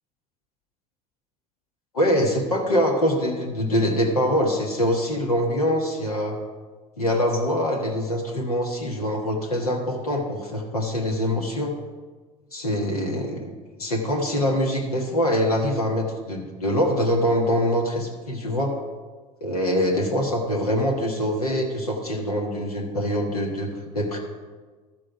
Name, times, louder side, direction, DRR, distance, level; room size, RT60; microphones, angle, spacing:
voice 1, 1.9-6.4 7.0-11.7 12.5-13.5 13.8-18.8 19.4-24.2, equal, 85° left, 0 dB, 1.5 m, -24 dB
12.5 x 7.6 x 4.9 m, 1.4 s
figure-of-eight pair, 65°, 19 cm